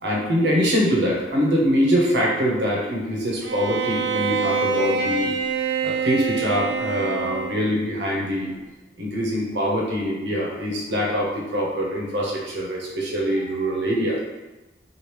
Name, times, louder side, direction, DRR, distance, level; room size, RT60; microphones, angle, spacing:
voice 1, 0.0-5.3 5.8-8.5 9.0-14.2, equal, 70° right, -3 dB, 0.8 m, -23 dB
Bowed string instrument, 3.4-7.8, right 4 dB, 90° right, 0.4 m, -25 dB
3.2 x 2.5 x 3.0 m, 1.1 s
head